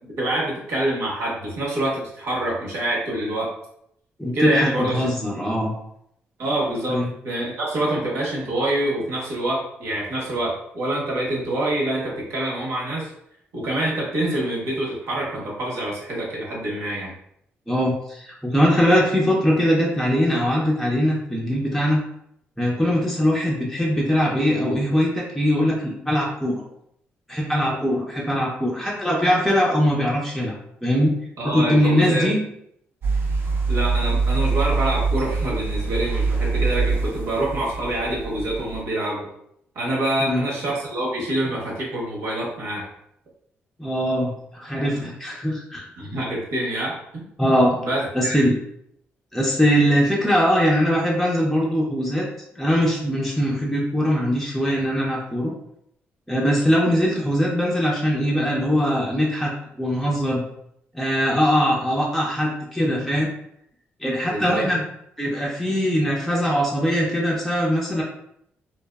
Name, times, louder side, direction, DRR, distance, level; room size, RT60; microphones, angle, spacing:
voice 1, 0.2-3.5 4.3-5.3 6.4-13.1 13.5-17.1 31.4-32.3 33.7-39.3 39.7-42.9 44.9-45.1 46.0-47.3 47.8-48.4 64.2-64.7, right 1 dB, 85° right, -3 dB, 0.9 m, -26 dB
voice 2, 4.2-5.7 6.9-7.1 17.7-22.0 22.6-26.6 27.3-30.6 30.8-31.1 31.4-32.4 40.2-40.4 43.8-45.8 47.4-47.8 48.1-48.6 49.3-52.3 52.6-55.5 56.3-60.4 60.9-63.3 64.0-64.8 65.2-68.0, equal, ahead, -4 dB, 0.4 m, -21 dB
sound 1, 33.0-38.8, right 4 dB, 60° right, 0.5 m, -24 dB
2.9 x 2.0 x 2.2 m, 0.73 s
cardioid pair, 115°, 4 cm